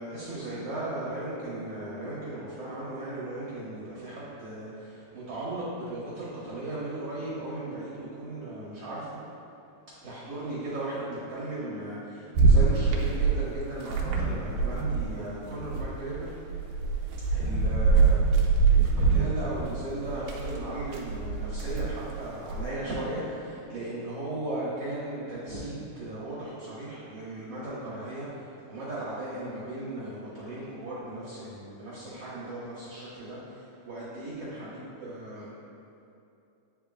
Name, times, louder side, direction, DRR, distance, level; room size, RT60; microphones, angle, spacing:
voice 1, 0.0-9.2 10.0-16.3 17.3-35.6, right 2 dB, 60° right, -10 dB, 1.8 m, -37 dB
sound 1, 12.4-15.2 15.5-22.7, right 4 dB, 80° right, 2.1 m, -25 dB
8.7 x 5.0 x 2.3 m, 2.7 s
omnidirectional pair, 3.9 m